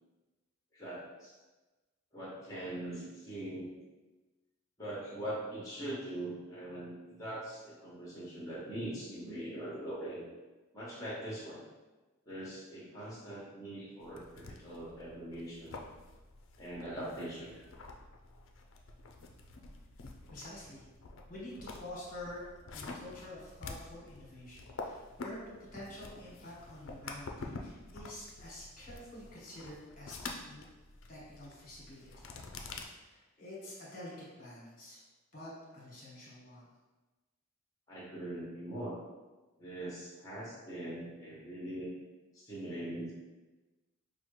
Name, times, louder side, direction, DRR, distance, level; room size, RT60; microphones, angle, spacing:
voice 1, 0.7-1.4 2.1-3.7 4.8-10.2 10.7-11.6 12.3-15.9 16.6-17.7 37.9-38.9 39.6-41.9 42.3-43.1, right 1 dB, 15° left, -6 dB, 1.0 m, -42 dB
sound 1, 14.0-32.8, left 3 dB, 70° left, 0.4 m, -48 dB
voice 2, 20.3-20.8 21.3-22.4 22.7-30.1 30.4-30.6 31.1-32.3 33.0-35.0 35.3-36.7, left 1 dB, 40° left, -6 dB, 1.3 m, -48 dB
5.6 x 2.2 x 3.2 m, 1.2 s
head